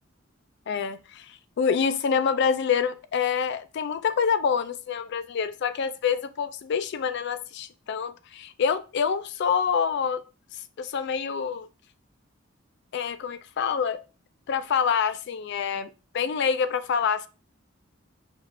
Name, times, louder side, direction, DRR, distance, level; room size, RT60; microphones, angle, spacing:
voice 1, 0.7-10.2 10.5-11.7 12.9-14.0 14.5-17.3, left 6 dB, 55° left, 0.3 m, -26 dB
5.1 x 2.4 x 3.2 m
head